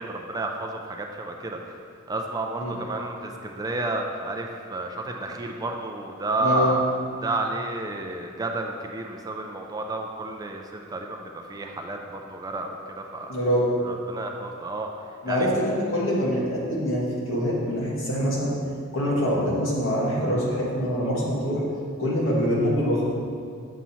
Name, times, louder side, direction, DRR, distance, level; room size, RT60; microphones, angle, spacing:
voice 1, 0.0-1.8 2.1-6.8 7.2-13.4 13.8-14.9 15.3-15.5, right 2 dB, 20° right, 2 dB, 0.4 m, -31 dB
voice 2, 6.4-6.8 13.3-13.7 15.2-18.5 18.9-21.6 22.0-23.1, equal, 70° left, -5 dB, 1.6 m, -24 dB
7.3 x 2.9 x 5.5 m, 2.3 s
head